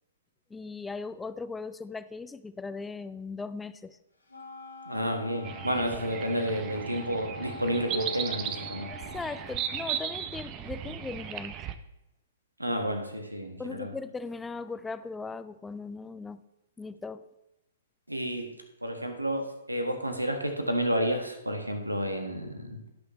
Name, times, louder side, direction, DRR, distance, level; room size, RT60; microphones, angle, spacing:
voice 1, 0.5-4.0 8.9-11.6 13.6-16.4 16.8-17.2, left 4 dB, 10° left, 13 dB, 0.5 m, -38 dB
Wind instrument woodwind instrument, 4.3-10.4, left 3 dB, 90° left, 3.2 m, -45 dB
voice 2, 4.9-8.9 12.6-13.9 18.1-18.5 18.8-22.9, equal, 90° right, 6 dB, 1.5 m, -31 dB
sound 1, 5.4-11.7, right 10 dB, 30° right, 0.7 m, -36 dB
17.0 x 6.4 x 3.1 m, 0.93 s
figure-of-eight pair, 115°, 0 cm